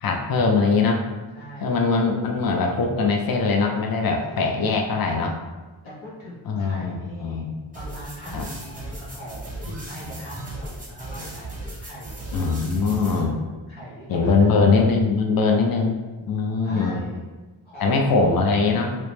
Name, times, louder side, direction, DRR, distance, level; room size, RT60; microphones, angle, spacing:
voice 1, 0.0-1.1 1.6-5.4 6.5-7.5 8.3-8.4 12.3-13.4 14.1-15.9 16.3-17.0 17.8-19.0, left 4 dB, 50° left, 2 dB, 0.5 m, -21 dB
voice 2, 1.3-1.8 4.3-4.6 5.8-11.4 11.8-12.2 13.0-14.8 16.6-17.2 17.6-18.4, equal, 85° left, -6 dB, 1.3 m, -40 dB
sound 1, 7.7-13.2, right 2 dB, 15° right, 1.0 m, -36 dB
3.1 x 2.9 x 3.2 m, 1.2 s
wide cardioid pair, 80°, 47 cm